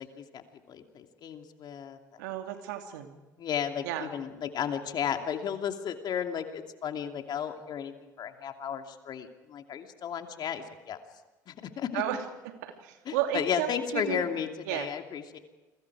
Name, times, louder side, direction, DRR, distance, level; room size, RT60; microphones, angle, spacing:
voice 1, 0.0-2.2 3.4-11.0 11.5-12.0 13.1-15.4, left 8 dB, 50° left, 5 dB, 2.8 m, -34 dB
voice 2, 2.2-3.1 3.8-4.1 11.9-14.3 14.7-14.9, right 12 dB, 75° right, 5 dB, 2.7 m, -33 dB
29.5 x 23.5 x 4.9 m, 1.2 s
hypercardioid pair, 70°, 9 cm